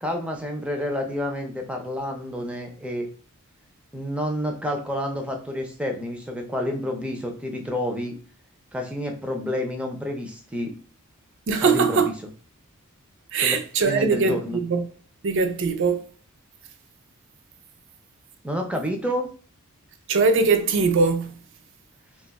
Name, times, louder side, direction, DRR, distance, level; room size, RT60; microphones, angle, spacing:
voice 1, 0.0-3.1 3.9-8.1 8.7-10.7 11.6-12.1 13.4-13.5 13.8-14.6 18.4-19.3, left 1 dB, 5° right, 0.5 m, -29 dB
voice 2, 11.5-12.1 13.3-14.8 15.2-16.1 20.1-21.4, right 4 dB, 60° right, 0.4 m, -21 dB
2.5 x 2.3 x 3.9 m
head